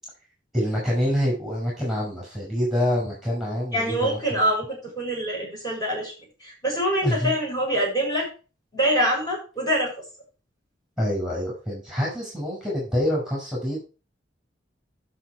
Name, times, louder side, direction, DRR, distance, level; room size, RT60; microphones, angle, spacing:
voice 1, 0.5-4.4 7.0-7.3 11.0-13.8, equal, ahead, -4 dB, 5.8 m, -26 dB
voice 2, 3.7-6.1 6.4-8.3 8.7-9.9, equal, 20° left, -3 dB, 7.3 m, -25 dB
11.5 x 6.6 x 4.7 m, 0.33 s
head